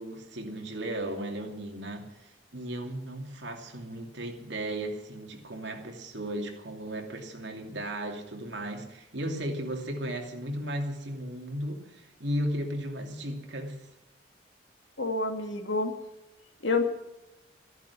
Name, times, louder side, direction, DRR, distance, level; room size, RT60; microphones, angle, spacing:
voice 1, 0.0-13.9, right 1 dB, 70° right, 2.6 m, -35 dB
voice 2, 15.0-15.9 16.6-16.8, left 3 dB, 85° left, 2.3 m, -28 dB
13.5 x 11.0 x 8.4 m
head